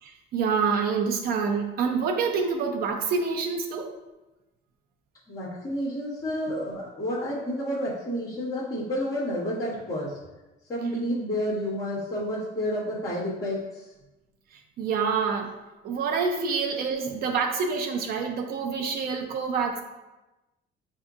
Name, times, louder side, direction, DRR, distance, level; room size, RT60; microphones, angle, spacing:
voice 1, 0.0-3.9 14.5-15.6 15.8-19.8, right 5 dB, 50° right, 3 dB, 0.5 m, -27 dB
voice 2, 5.3-10.2 10.7-13.9, equal, 15° left, -11 dB, 1.3 m, -30 dB
5.4 x 2.7 x 2.4 m, 1.0 s
cardioid pair, 180°, 20 cm